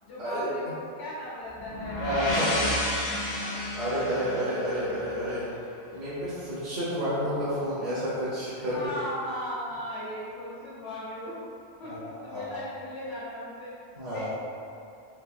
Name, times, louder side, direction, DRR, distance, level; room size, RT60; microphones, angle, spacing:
voice 1, 0.0-3.7 4.0-4.1 7.0-7.1 8.6-11.3 11.8-14.3, equal, 75° left, -10 dB, 1.0 m, -38 dB
sound 1, 1.6-5.4, left 1 dB, 50° left, 0.6 m, -31 dB
voice 2, 2.0-2.5 3.7-5.4 5.9-8.8 11.9-12.0 12.3-12.5 14.0-14.3, equal, 50° right, -11 dB, 0.8 m, -30 dB
3.4 x 2.7 x 2.5 m, 2.5 s
omnidirectional pair, 1.1 m